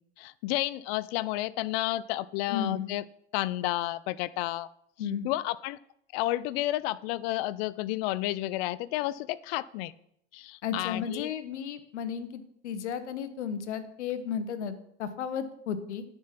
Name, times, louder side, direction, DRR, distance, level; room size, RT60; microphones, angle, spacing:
voice 1, 0.2-3.0 3.3-4.7 5.0-5.8 6.1-9.9 10.3-11.3, left 16 dB, 60° left, 19 dB, 0.5 m, -31 dB
voice 2, 2.5-2.9 5.0-5.3 10.6-16.0, left 7 dB, 90° left, 12 dB, 1.1 m, -34 dB
10.5 x 5.3 x 5.8 m, 0.71 s
hypercardioid pair, 100°, 34 cm